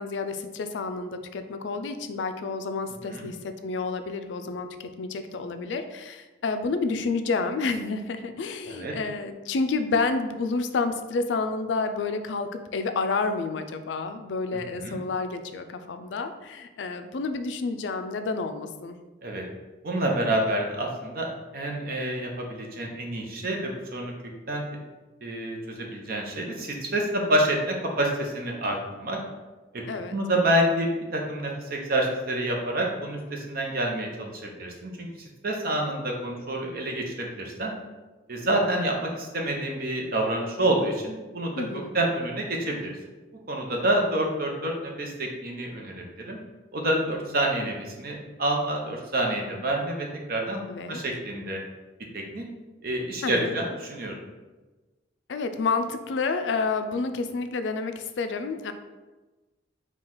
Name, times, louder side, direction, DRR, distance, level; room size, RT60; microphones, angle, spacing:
voice 1, 0.0-19.0 29.9-30.2 41.6-41.9 50.7-51.0 53.2-53.5 55.3-58.7, left 4 dB, 90° left, 8 dB, 0.4 m, -29 dB
voice 2, 19.8-21.3 21.5-24.1 24.5-24.6 25.2-29.2 29.7-29.8 30.1-35.1 35.4-37.7 38.3-41.5 41.9-42.9 43.5-46.4 46.7-50.6 50.9-51.6 52.1-52.4 52.8-54.1, right 1 dB, 55° right, 0 dB, 0.7 m, -28 dB
4.5 x 2.3 x 3.8 m, 1.2 s
head